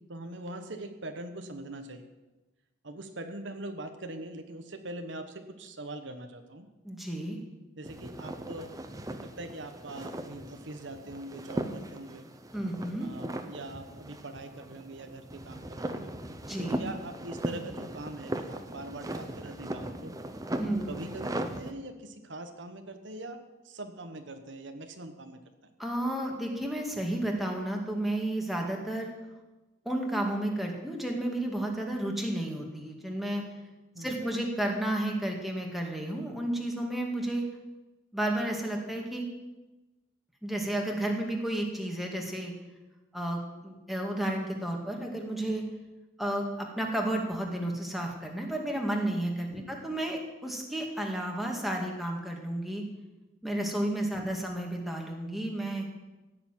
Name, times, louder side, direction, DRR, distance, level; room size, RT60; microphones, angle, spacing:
voice 1, 0.1-2.0 2.8-6.7 7.8-8.7 9.2-12.3 13.0-16.1 16.6-20.1 20.6-23.4 23.6-25.4 33.9-34.1 49.5-49.7, right 2 dB, 70° right, 7 dB, 1.2 m, -42 dB
voice 2, 6.8-7.4 12.5-13.1 16.5-16.9 20.6-21.0 25.8-29.1 29.9-33.4 34.0-37.4 38.1-39.3 40.4-42.5 43.1-45.6 46.2-52.8 53.4-55.9, right 1 dB, ahead, 0 dB, 2.1 m, -32 dB
sound 1, 7.8-21.7, right 1 dB, 20° right, 0.9 m, -38 dB
16.0 x 6.9 x 9.1 m, 1.1 s
head